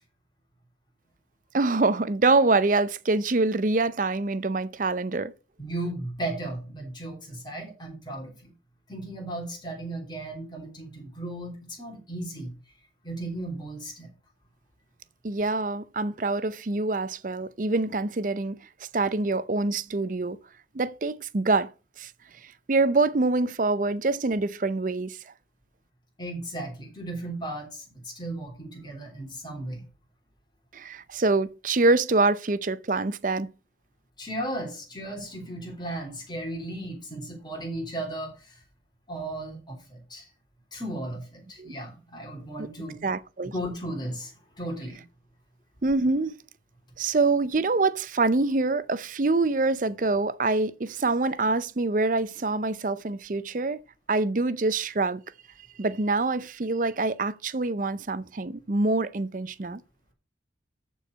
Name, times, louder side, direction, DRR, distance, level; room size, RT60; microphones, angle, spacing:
voice 1, 1.5-5.3 15.2-18.6 18.9-20.4 20.7-21.7 22.0-22.1 22.7-25.2 30.7-33.5 41.6-41.8 43.0-43.5 45.8-46.4 47.0-53.8 54.1-55.2 55.8-59.8, right 3 dB, 45° right, 0.6 m, -25 dB
voice 2, 5.6-8.5 8.9-12.5 13.0-14.1 26.2-29.8 34.2-38.6 39.1-40.3 40.7-43.1 43.5-45.0, right 1 dB, 25° left, 3.4 m, -35 dB
13.5 x 4.7 x 5.4 m
head